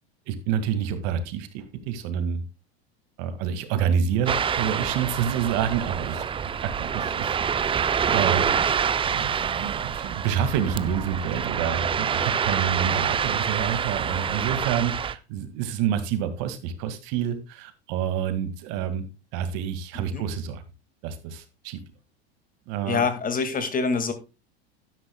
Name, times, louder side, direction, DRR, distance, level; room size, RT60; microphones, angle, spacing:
voice 1, 0.3-2.4 3.2-6.3 6.6-8.5 9.0-19.1 19.3-20.6 21.0-21.8 22.7-23.0, right 8 dB, 60° right, 2.0 m, -28 dB
Ocean, 4.3-15.1, right 7 dB, 15° right, 0.5 m, -26 dB
voice 2, 22.9-24.1, left 5 dB, 25° left, 2.0 m, -25 dB
12.0 x 10.0 x 2.2 m
hypercardioid pair, 110°, 32 cm